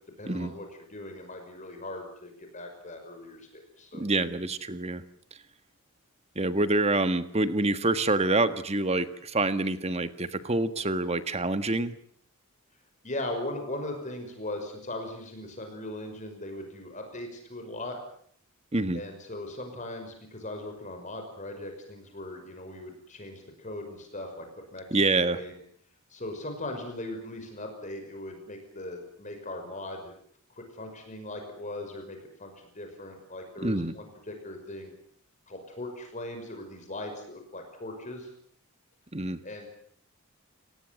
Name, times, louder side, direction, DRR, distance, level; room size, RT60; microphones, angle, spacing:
voice 1, 0.2-4.0 13.0-18.0 18.9-24.5 24.7-25.6 26.1-30.1 30.5-34.9 35.5-38.3 39.4-39.7, left 1 dB, 35° left, 5 dB, 5.7 m, -39 dB
voice 2, 3.9-5.0 6.3-12.0 18.7-19.0 24.9-25.4 33.6-33.9 39.1-39.4, right 2 dB, 30° right, 11 dB, 1.6 m, -26 dB
29.5 x 19.0 x 7.8 m, 0.62 s
head